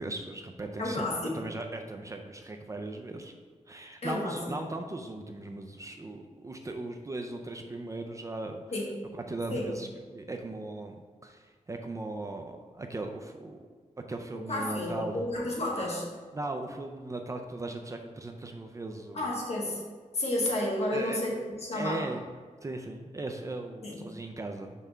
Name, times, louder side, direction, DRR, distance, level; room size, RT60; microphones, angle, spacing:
voice 1, 0.0-1.1 1.3-3.3 3.7-8.6 9.1-13.6 14.1-15.2 16.3-19.3 20.9-21.2 21.7-22.2 22.6-24.7, right 2 dB, 25° right, 4 dB, 0.4 m, -38 dB
voice 2, 0.8-1.4 4.0-4.4 8.7-8.9 9.5-9.7 14.5-16.0 19.1-19.8 20.1-21.3 21.6-22.0 23.8-24.0, left 1 dB, 55° left, -2 dB, 1.4 m, -31 dB
5.5 x 3.6 x 5.6 m, 1.5 s
wide cardioid pair, 155°, 13 cm